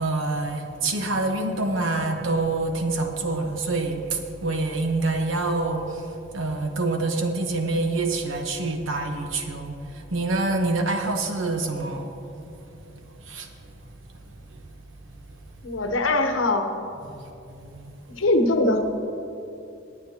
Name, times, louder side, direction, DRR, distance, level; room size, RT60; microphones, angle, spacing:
voice 1, 0.0-6.1 6.3-12.1 12.8-12.9 13.2-13.5 17.0-17.2 17.5-17.9, right 2 dB, 85° right, 4 dB, 1.2 m, -26 dB
voice 2, 15.6-16.6 18.2-18.9, left 2 dB, 85° left, 5 dB, 1.0 m, -21 dB
20.0 x 8.8 x 2.9 m, 2.7 s
head